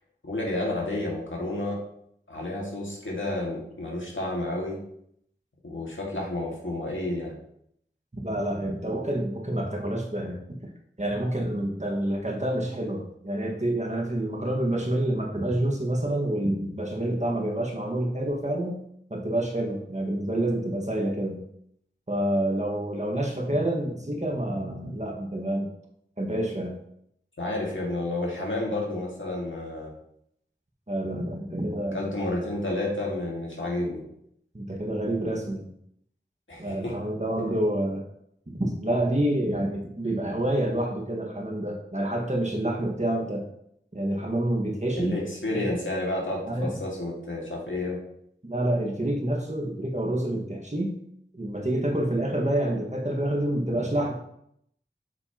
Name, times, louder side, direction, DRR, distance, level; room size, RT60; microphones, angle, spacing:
voice 1, 0.2-1.8 2.3-4.8 5.6-7.4 27.4-29.9 31.9-34.0 36.5-36.9 45.0-48.0, left 2 dB, 85° left, -3 dB, 2.0 m, -30 dB
voice 2, 8.2-10.4 11.0-18.8 19.1-21.5 22.1-25.7 26.2-26.8 30.9-32.1 34.5-35.7 36.6-38.0 38.5-43.4 43.9-45.3 45.5-45.6 46.5-46.7 48.4-51.1 51.3-54.1, right 1 dB, 35° right, 0 dB, 1.7 m, -28 dB
7.5 x 6.3 x 3.0 m, 0.72 s
wide cardioid pair, 40°, 20 cm